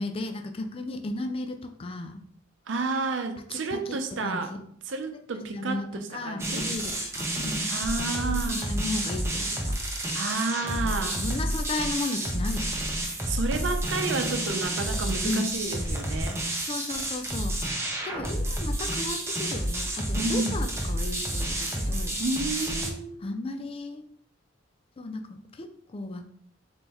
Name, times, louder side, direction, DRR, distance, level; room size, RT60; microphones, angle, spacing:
voice 1, 0.0-2.2 3.5-4.6 5.3-7.7 8.0-9.8 10.8-12.8 15.2-15.5 16.7-17.6 18.0-22.2 23.2-24.0 25.0-26.3, left 2 dB, 30° left, 6 dB, 0.4 m, -35 dB
voice 2, 2.7-4.5 4.9-5.8 6.1-6.7 7.7-8.7 10.1-11.2 13.3-16.4 20.2-20.6 22.2-23.3, right 3 dB, 70° right, 6 dB, 0.6 m, -30 dB
sound 1, 6.4-22.9, right 1 dB, 15° right, 0.7 m, -30 dB
3.9 x 3.7 x 2.9 m, 0.63 s
head